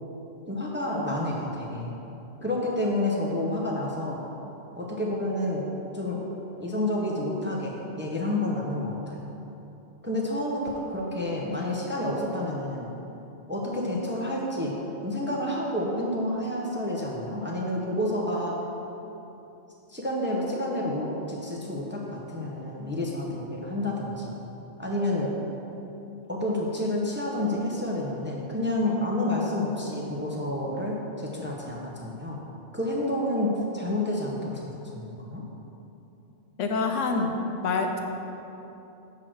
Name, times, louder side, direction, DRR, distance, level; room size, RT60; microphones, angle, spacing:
voice 1, 0.5-2.0 2.4-4.2 4.8-5.7 5.9-6.2 6.6-9.3 10.0-10.6 10.9-12.9 13.5-14.7 15.0-18.5 19.9-24.3 24.8-25.3 26.3-32.4 32.7-35.4, left 1 dB, 10° right, -3 dB, 0.7 m, -29 dB
voice 2, 36.6-37.4 37.6-38.0, left 4 dB, 85° left, 4 dB, 1.0 m, -26 dB
6.3 x 4.8 x 6.2 m, 3.0 s
omnidirectional pair, 1.2 m